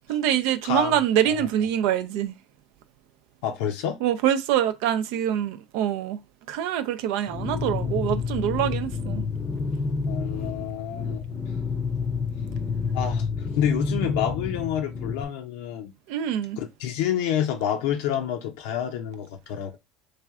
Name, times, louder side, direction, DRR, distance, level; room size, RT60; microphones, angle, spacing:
voice 1, 0.1-2.3 4.0-6.2 6.5-9.2 16.1-16.6, right 10 dB, 70° right, 0.4 m, -25 dB
voice 2, 0.6-1.0 1.3-1.5 3.4-4.0 10.1-11.2 12.9-13.3 13.6-15.9 16.6-19.8, left 9 dB, 75° left, 0.6 m, -28 dB
sound 1, 7.3-15.2, left 5 dB, 30° left, 0.6 m, -29 dB
3.2 x 2.4 x 3.5 m
hypercardioid pair, 90°, 0 cm